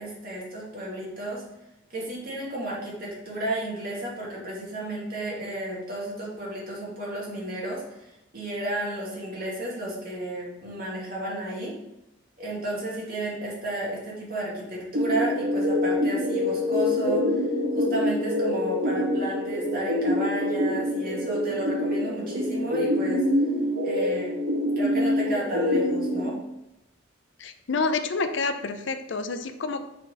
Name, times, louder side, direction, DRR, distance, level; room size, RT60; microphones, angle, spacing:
voice 1, 0.0-1.4 1.9-11.7 12.4-17.4 17.7-23.2 23.8-24.3 24.8-26.3, right 1 dB, 45° right, -5 dB, 2.4 m, -33 dB
sound 1, 14.9-26.2, left 1 dB, 75° right, 2.2 m, -25 dB
voice 2, 27.4-29.8, left 4 dB, 65° left, 9 dB, 0.6 m, -28 dB
6.2 x 4.3 x 5.4 m, 0.88 s
head